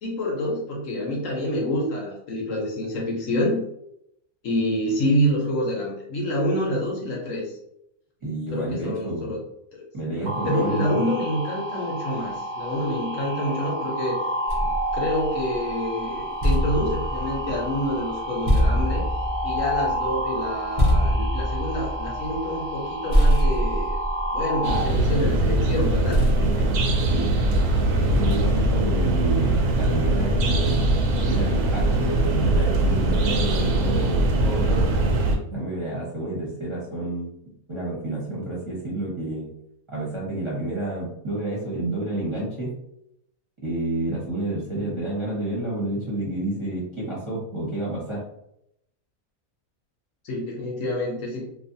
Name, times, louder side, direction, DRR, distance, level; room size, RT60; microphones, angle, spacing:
voice 1, 0.0-3.6 4.4-7.6 8.5-9.4 10.2-14.3 14.6-19.0 19.4-24.0 24.3-26.7 50.2-51.5, left 1 dB, 65° left, -2 dB, 1.0 m, -27 dB
voice 2, 8.2-9.3 9.9-11.0 27.1-27.3 28.0-30.9 31.2-34.9 35.5-37.3 37.7-39.5 39.9-42.7 43.6-48.2, right 1 dB, 25° right, -8 dB, 0.9 m, -29 dB
sound 1, 10.3-24.8, right 1 dB, 60° right, 0.5 m, -30 dB
sound 2, 14.5-15.7 16.2-22.8 23.1-25.4 26.1-27.6 28.3-28.8, equal, 35° left, 0.6 m, -25 dB
sound 3, 24.6-35.4, right 2 dB, 80° right, 1.1 m, -21 dB
2.6 x 2.4 x 2.6 m, 0.76 s
omnidirectional pair, 1.6 m